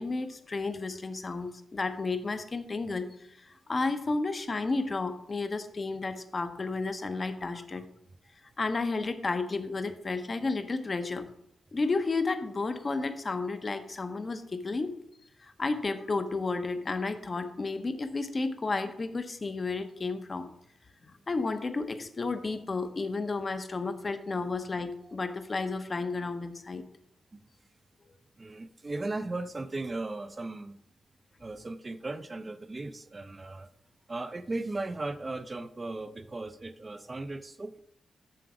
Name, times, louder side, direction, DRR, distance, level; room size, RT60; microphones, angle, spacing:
voice 1, 0.0-3.1 3.4-7.8 8.6-11.2 11.7-14.9 15.4-20.5 21.3-26.8, left 3 dB, 30° left, 9 dB, 0.7 m, -32 dB
voice 2, 7.5-7.9 25.0-25.2 27.3-27.4 28.4-30.8 31.4-33.7 34.1-37.8, right 2 dB, 25° right, 11 dB, 0.5 m, -37 dB
7.7 x 6.8 x 4.8 m, 0.74 s
wide cardioid pair, 140°, 0 cm